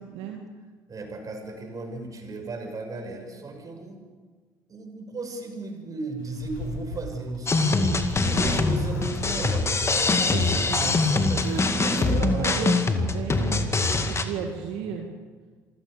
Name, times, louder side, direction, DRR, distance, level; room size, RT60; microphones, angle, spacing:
voice 1, 0.9-4.0 4.7-7.9 8.3-12.6 14.3-15.0, right 3 dB, 40° right, 3 dB, 6.4 m, -36 dB
Zipper (clothing), 6.2-13.5, left 1 dB, 80° left, 5.9 m, -36 dB
sound 1, 7.5-14.2, left 3 dB, 30° left, 2.2 m, -23 dB
voice 2, 7.6-8.5 10.1-10.9 11.4-13.7 14.0-15.1, right 7 dB, 70° right, 1 dB, 2.1 m, -34 dB
27.0 x 16.5 x 6.8 m, 1.4 s
hypercardioid pair, 55°, 10 cm